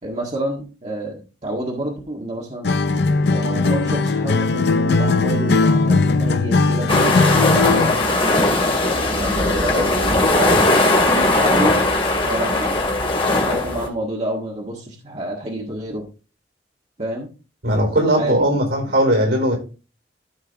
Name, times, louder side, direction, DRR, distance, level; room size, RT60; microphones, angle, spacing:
voice 1, 0.0-2.7 3.3-8.5 8.9-11.8 12.2-12.8 13.3-16.1 17.0-17.3 18.2-18.3, right 1 dB, 35° right, -2 dB, 1.8 m, -28 dB
Acoustic guitar, 2.6-8.0, left 3 dB, 65° left, 0.5 m, -18 dB
sound 1, 6.9-13.9, left 2 dB, 30° left, 2.3 m, -18 dB
voice 2, 17.6-19.6, right 1 dB, 75° right, 2 dB, 4.6 m, -18 dB
14.0 x 4.8 x 3.5 m, 0.33 s
head